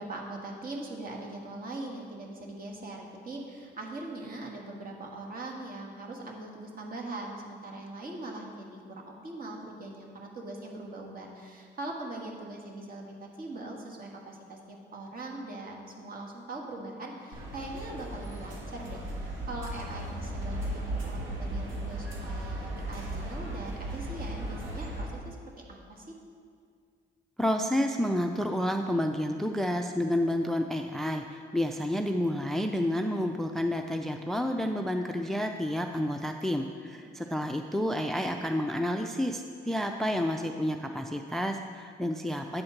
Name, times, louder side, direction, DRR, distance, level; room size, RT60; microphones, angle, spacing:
voice 1, 0.0-8.8 9.2-25.4 25.7-26.1 36.9-37.5, right 2 dB, 45° right, 0 dB, 1.6 m, -41 dB
sound 1, 17.3-25.1, right 1 dB, 80° right, 1.5 m, -36 dB
voice 2, 27.4-42.6, equal, ahead, 5 dB, 0.4 m, -30 dB
8.6 x 4.4 x 6.5 m, 2.2 s
cardioid pair, 90°, 20 cm